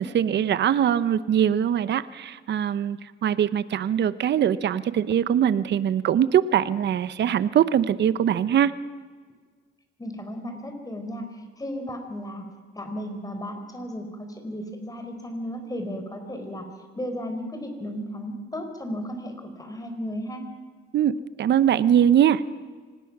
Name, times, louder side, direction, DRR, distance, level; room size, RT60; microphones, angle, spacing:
voice 1, 0.0-8.7 20.9-21.1 21.4-22.4, right 9 dB, 60° right, 15 dB, 0.9 m, -22 dB
voice 2, 10.0-12.5 12.8-20.4, equal, 20° left, 6 dB, 4.4 m, -34 dB
25.0 x 19.0 x 6.0 m, 1.5 s
cardioid pair, 90°, 20 cm